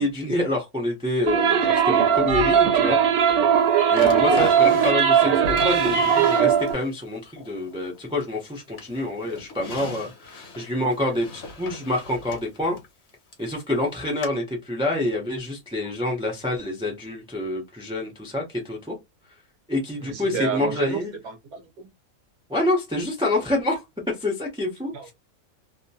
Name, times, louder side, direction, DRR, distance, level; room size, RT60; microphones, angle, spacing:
voice 1, 0.0-3.3 3.9-12.8 13.4-19.0 19.7-21.1 22.5-25.1, left 1 dB, 5° right, 0.5 m, -27 dB
sound 1, 1.3-6.7, right 7 dB, 90° right, 1.1 m, -19 dB
Drawer open or close, 4.0-6.9 7.4-8.4 8.8-13.5 14.2-14.3, left 4 dB, 60° left, 1.1 m, -40 dB
voice 2, 20.0-21.0 21.2-21.9 24.9-25.1, right 6 dB, 55° right, 1.1 m, -30 dB
2.8 x 2.1 x 2.7 m
omnidirectional pair, 1.5 m